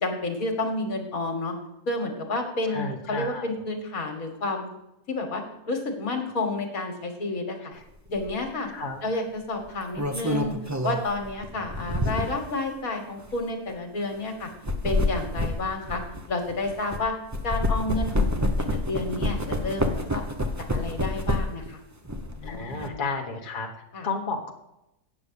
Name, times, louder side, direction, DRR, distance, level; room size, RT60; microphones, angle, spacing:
voice 1, 0.0-1.5 1.9-4.7 5.1-7.7 8.1-8.7 9.0-10.5 10.8-14.5 14.8-16.0 16.3-17.1 17.4-20.2 20.7-21.8 22.4-23.0 23.9-24.1, left 2 dB, 60° left, 5 dB, 2.0 m, -30 dB
voice 2, 2.7-3.5 7.7-7.8 8.7-9.0 22.4-23.7 24.0-24.5, left 3 dB, 35° left, 1 dB, 1.2 m, -32 dB
sound 1, 8.1-8.3 9.6-12.5 13.2-13.3 14.4-17.0 17.3-21.7 22.0-22.9, left 1 dB, 20° right, 0.5 m, -28 dB
8.6 x 7.3 x 6.8 m, 0.87 s
omnidirectional pair, 1.7 m